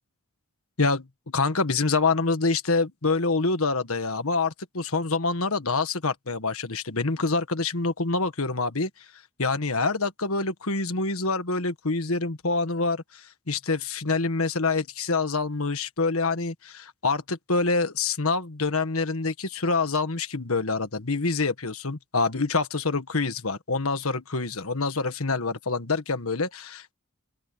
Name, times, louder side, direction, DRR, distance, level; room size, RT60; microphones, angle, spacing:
voice 1, 0.8-8.9 9.4-26.9, left 3 dB, 75° left, 1.6 m, -26 dB
open air
head